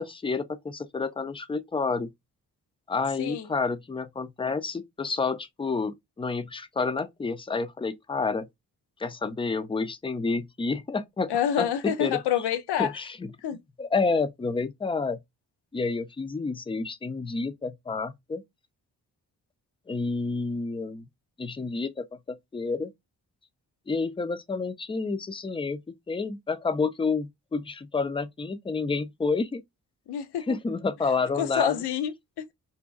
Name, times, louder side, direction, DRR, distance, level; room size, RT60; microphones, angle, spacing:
voice 1, 0.0-2.1 2.9-8.5 9.0-12.2 12.8-13.3 13.8-15.2 15.7-18.4 19.9-21.0 21.4-22.9 23.9-29.6 30.5-31.8, left 4 dB, 15° left, 0.3 m, -29 dB
voice 2, 3.2-3.5 11.3-12.9 13.4-13.6 30.1-30.5 31.3-32.5, left 9 dB, 80° left, 0.5 m, -27 dB
2.7 x 2.2 x 2.3 m
supercardioid pair, 45°, 39 cm